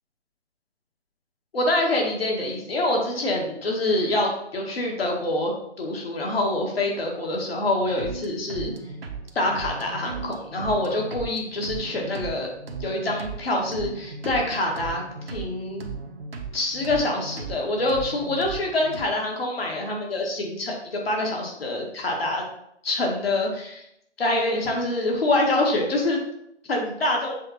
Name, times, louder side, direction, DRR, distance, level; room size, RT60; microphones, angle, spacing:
voice 1, 1.5-8.7 9.4-12.5 12.8-15.0 15.3-15.8 16.5-22.4 22.8-23.8 24.2-26.2 26.7-27.4, left 2 dB, 60° left, 0 dB, 1.9 m, -25 dB
sound 1, 7.8-19.0, right 4 dB, 60° right, 1.0 m, -37 dB
7.5 x 3.6 x 4.3 m, 0.77 s
figure-of-eight pair, 135°, 34 cm